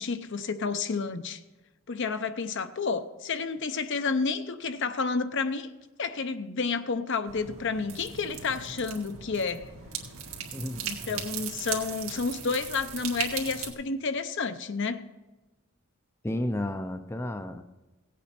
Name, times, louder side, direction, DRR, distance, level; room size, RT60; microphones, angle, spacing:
voice 1, 0.0-1.4 1.9-5.7 6.0-9.7 10.8-15.0, left 4 dB, 60° left, 0.7 m, -30 dB
sound 1, 7.3-13.7, right 7 dB, 80° right, 1.8 m, -38 dB
voice 2, 10.5-11.2 16.2-17.6, left 1 dB, 10° left, 0.5 m, -32 dB
17.0 x 8.3 x 4.3 m
head